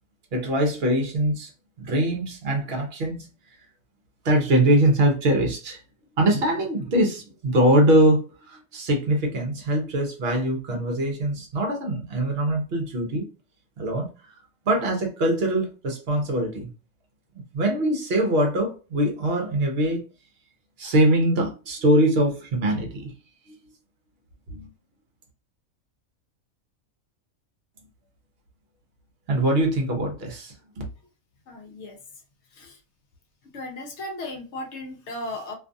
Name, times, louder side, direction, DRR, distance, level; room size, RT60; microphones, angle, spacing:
voice 1, 0.3-1.5 1.8-3.3 4.2-5.8 6.2-13.3 13.8-14.1 14.7-16.7 17.5-20.0 20.8-23.1 23.5-23.6 24.5-24.7 29.3-30.5, right 1 dB, 55° right, 0.8 m, -22 dB
voice 2, 31.5-32.0 32.5-32.8 33.5-35.5, left 1 dB, 65° left, 0.8 m, -36 dB
2.6 x 2.4 x 2.5 m
omnidirectional pair, 1.5 m